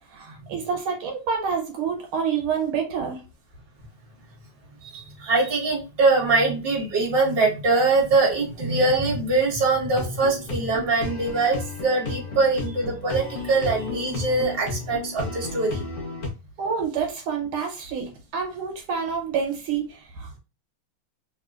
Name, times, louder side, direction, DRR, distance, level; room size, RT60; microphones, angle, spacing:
voice 1, 0.1-3.2 16.6-20.4, right 6 dB, 85° right, 3 dB, 1.7 m, -28 dB
voice 2, 4.8-15.8, right 3 dB, 35° right, -2 dB, 1.3 m, -23 dB
sound 1, 9.8-16.3, left 3 dB, 55° left, 1.0 m, -33 dB
3.3 x 2.9 x 2.4 m, 0.29 s
omnidirectional pair, 2.3 m